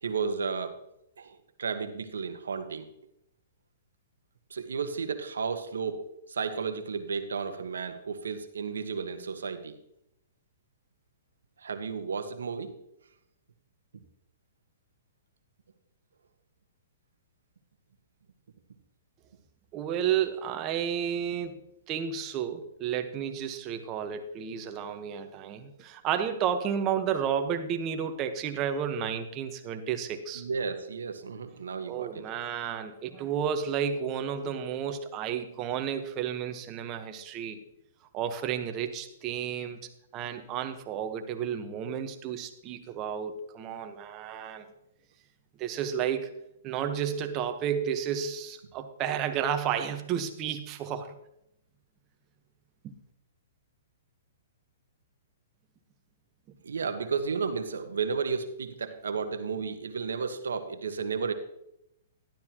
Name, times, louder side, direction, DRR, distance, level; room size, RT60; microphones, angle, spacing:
voice 1, 0.0-0.8 1.2-2.9 4.5-9.8 11.6-12.7 30.3-32.3 56.6-61.3, right 5 dB, 90° right, 8 dB, 1.3 m, -33 dB
voice 2, 19.7-21.6 21.9-30.4 31.9-37.6 38.1-39.8 40.1-44.7 45.6-51.2 52.8-52.9, right 8 dB, 30° right, 7 dB, 1.2 m, -32 dB
12.5 x 12.0 x 3.0 m, 0.80 s
hypercardioid pair, 145°, 0 cm